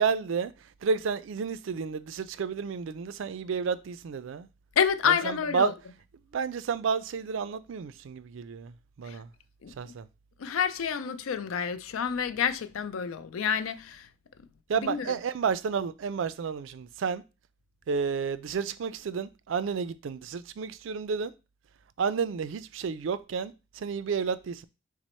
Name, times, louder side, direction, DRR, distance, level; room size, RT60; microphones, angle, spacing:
voice 1, 0.0-4.5 5.0-5.7 6.3-9.3 9.8-10.1 14.7-17.2 17.9-21.3 22.0-24.7, right 6 dB, 70° right, 0.4 m, -31 dB
voice 2, 4.8-5.7 9.0-9.2 9.6-9.9 10.4-14.1 14.7-15.1, left 7 dB, 90° left, 0.4 m, -29 dB
5.9 x 2.0 x 4.2 m
head